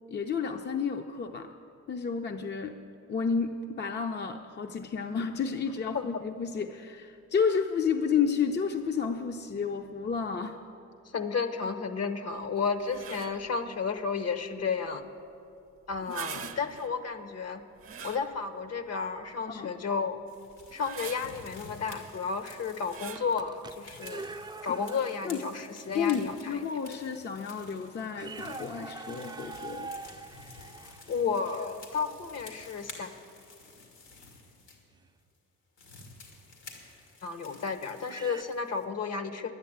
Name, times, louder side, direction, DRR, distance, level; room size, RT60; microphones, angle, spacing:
voice 1, 0.1-1.5 1.9-2.8 3.1-10.6 16.1-16.5 19.5-19.7 25.2-25.4 25.9-29.9, left 6 dB, 35° left, 5 dB, 0.6 m, -31 dB
voice 2, 11.0-15.0 15.9-17.6 18.0-20.2 20.7-24.2 24.6-26.6 30.8-33.1 37.2-39.5, left 5 dB, 55° left, 9 dB, 1.1 m, -32 dB
sound 1, 12.8-13.5 15.9-17.0 17.8-18.7 19.3-19.4 20.6-21.5 22.8-23.4, right 8 dB, 45° right, 0.8 m, -43 dB
sound 2, 20.3-34.8 35.3-35.4 35.8-38.8, left 3 dB, 85° left, 2.4 m, -51 dB
sound 3, 23.0-25.5 26.1-26.2 27.1-27.2 27.5-27.7 28.1-31.8 34.9-35.1 36.9-37.0 38.0-38.4, right 3 dB, 15° right, 0.5 m, -44 dB
11.0 x 9.5 x 8.7 m, 2.6 s
cardioid pair, 90°, 30 cm